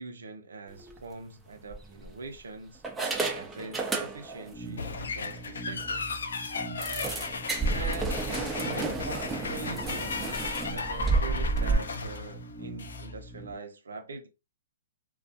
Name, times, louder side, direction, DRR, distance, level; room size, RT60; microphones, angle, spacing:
voice 1, 0.0-2.8 3.3-6.2 7.7-14.3, right 3 dB, 90° right, 0.6 m, -43 dB
sound 1, 0.8-1.0 1.7-2.4 2.8-4.5 4.8-5.0 5.4-5.5 5.8-5.9 6.8-11.8, right 3 dB, 10° right, 0.4 m, -31 dB
sound 2, 4.5-13.5, right 2 dB, 15° left, 0.7 m, -43 dB
sound 3, 4.8-13.1, left 4 dB, 80° left, 0.4 m, -36 dB
2.3 x 2.2 x 2.6 m
hypercardioid pair, 145°, 0 cm